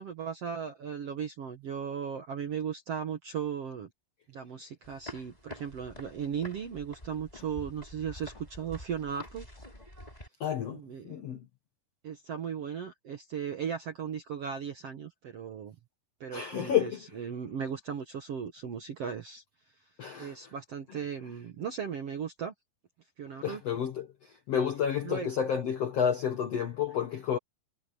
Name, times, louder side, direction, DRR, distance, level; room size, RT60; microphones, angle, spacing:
voice 1, 0.0-3.9 4.3-9.5 10.7-11.2 12.0-15.7 16.2-19.4 20.2-22.5 23.2-23.6 25.0-25.3, right 7 dB, 65° right, 1.6 m, -37 dB
sound 1, 4.8-10.3, left 1 dB, 10° left, 7.0 m, -47 dB
voice 2, 10.4-10.8 11.1-11.4 16.3-17.0 20.0-20.3 23.4-24.0 24.5-27.4, left 8 dB, 70° left, 1.5 m, -30 dB
omnidirectional pair, 4.6 m